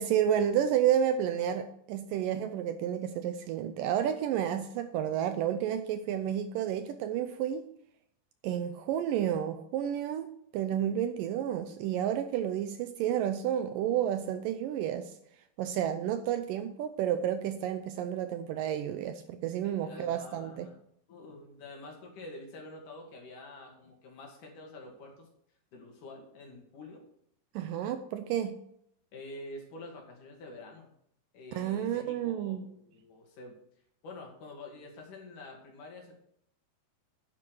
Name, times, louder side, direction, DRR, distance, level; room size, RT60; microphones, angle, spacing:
voice 1, 0.0-7.6 8.4-10.3 10.5-15.1 15.6-20.7 27.6-28.6 31.5-32.6, right 10 dB, 80° right, 9 dB, 2.1 m, -31 dB
voice 2, 19.6-20.8 21.1-25.3 25.7-27.0 29.1-30.9 31.3-33.5 34.0-36.2, left 2 dB, 60° left, 1 dB, 3.7 m, -47 dB
10.0 x 8.7 x 4.7 m, 0.70 s
omnidirectional pair, 4.3 m